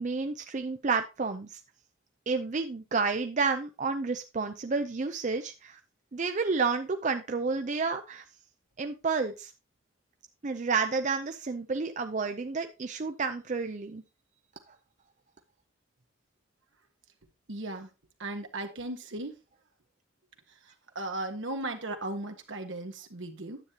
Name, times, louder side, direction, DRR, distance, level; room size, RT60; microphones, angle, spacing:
voice 1, 0.0-1.6 2.3-5.8 6.1-8.2 8.8-9.5 10.4-14.0, right 4 dB, 40° right, 7 dB, 0.5 m, -30 dB
voice 2, 17.5-17.9 18.2-19.3 20.5-23.6, right 2 dB, 75° right, 6 dB, 1.4 m, -37 dB
9.8 x 8.2 x 2.9 m, 0.27 s
head